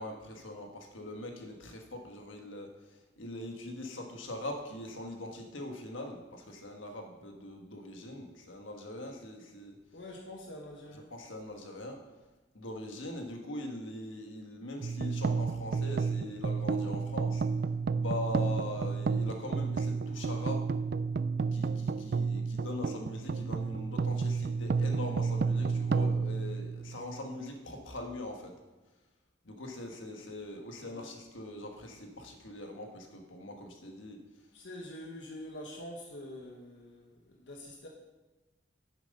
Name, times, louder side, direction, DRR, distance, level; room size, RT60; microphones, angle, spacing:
voice 1, 0.0-9.8 11.1-12.0 12.5-17.4 17.9-20.7 21.5-28.6 29.4-34.2, left 1 dB, 85° left, 3 dB, 1.5 m, -42 dB
voice 2, 9.9-11.1 30.8-31.1 34.5-37.9, left 1 dB, 70° left, 0 dB, 1.3 m, -46 dB
sound 1, 14.8-27.2, right 4 dB, 50° right, 0.3 m, -31 dB
9.1 x 7.4 x 5.5 m, 1.1 s
head